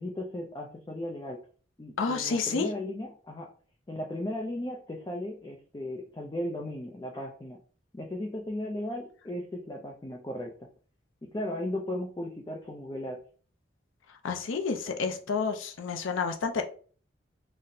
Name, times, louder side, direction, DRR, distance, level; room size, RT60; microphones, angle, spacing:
voice 1, 0.0-1.4 1.8-3.5 3.9-7.6 7.9-10.5 11.3-13.2, left 1 dB, 20° left, 0.3 m, -36 dB
voice 2, 2.0-2.7 14.2-16.6, left 5 dB, 90° left, 0.5 m, -29 dB
4.0 x 2.0 x 2.6 m
head